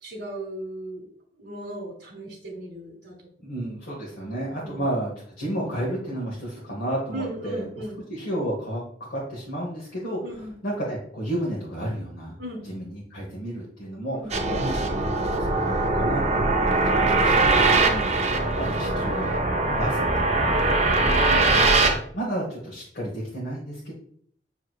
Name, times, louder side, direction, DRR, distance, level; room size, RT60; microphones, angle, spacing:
voice 1, 0.0-1.1 1.4-3.1 4.6-4.8 7.1-8.0 10.2-10.5 12.4-12.6 14.1-14.6 17.7-18.3 21.3-21.7, right 1 dB, 70° right, -2 dB, 1.1 m, -37 dB
voice 2, 3.4-7.8 8.1-12.4 12.6-17.7 18.2-21.2 21.9-23.9, right 1 dB, 60° left, -4 dB, 0.9 m, -32 dB
sound 1, 14.3-22.0, right 2 dB, 40° right, 0.5 m, -21 dB
6.0 x 2.8 x 2.3 m, 0.62 s
head